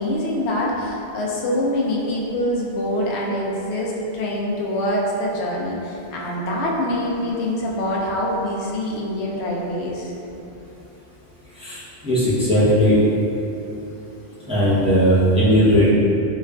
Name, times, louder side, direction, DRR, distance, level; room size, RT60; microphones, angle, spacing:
voice 1, 0.0-10.1, left 1 dB, 90° left, -3 dB, 0.9 m, -24 dB
voice 2, 11.6-13.0 14.5-15.9, equal, 5° right, -11 dB, 0.5 m, -17 dB
4.3 x 2.3 x 2.2 m, 2.9 s
omnidirectional pair, 1.1 m